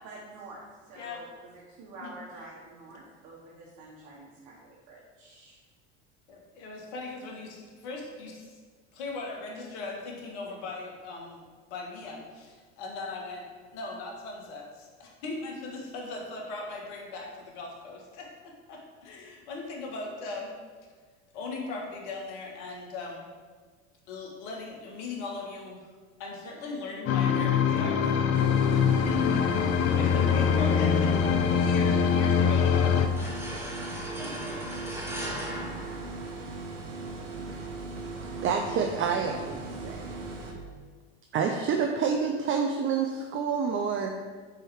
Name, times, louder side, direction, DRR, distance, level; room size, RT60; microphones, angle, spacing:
voice 1, 0.0-0.6 0.9-5.6, right 2 dB, 55° right, -4 dB, 1.4 m, -47 dB
voice 2, 6.3-8.6 8.9-20.5 21.3-23.3 24.1-25.9 26.2-28.2 28.7-31.2 31.5-34.5, left 3 dB, 70° left, 0 dB, 1.5 m, -39 dB
sound 1, 27.1-33.1, left 7 dB, 45° left, 0.6 m, -23 dB
sound 2, 28.3-40.5, right 3 dB, 90° right, 0.9 m, -38 dB
sound 3, 33.2-36.7, equal, 5° right, 1.4 m, -38 dB
voice 3, 38.4-40.1 41.3-44.2, right 6 dB, 35° right, 3 dB, 0.6 m, -28 dB
4.6 x 4.5 x 4.8 m, 1.5 s
hypercardioid pair, 80°, 36 cm